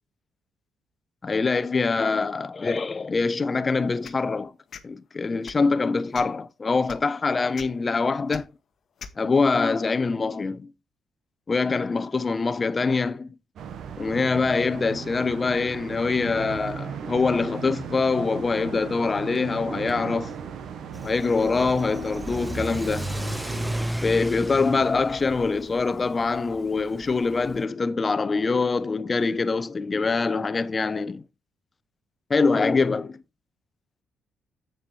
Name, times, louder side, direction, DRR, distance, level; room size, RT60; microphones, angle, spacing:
voice 1, 1.2-4.5 4.8-8.5 9.2-10.7 11.5-13.3 14.0-20.3 21.0-23.1 24.0-31.2 32.3-33.2, left 4 dB, 30° left, 0.7 m, -24 dB
sound 1, 4.0-4.2 4.7-4.9 5.4-5.7 6.1-6.4 6.9-7.0 7.5-7.7 8.3-8.4 9.0-9.2, left 6 dB, 55° left, 1.1 m, -40 dB
sound 2, 13.6-23.9, right 7 dB, 70° right, 1.0 m, -37 dB
Car / Accelerating revving vroom, 20.9-27.6, equal, 5° right, 0.4 m, -34 dB
7.7 x 7.2 x 3.3 m
cardioid pair, 90°, 0 cm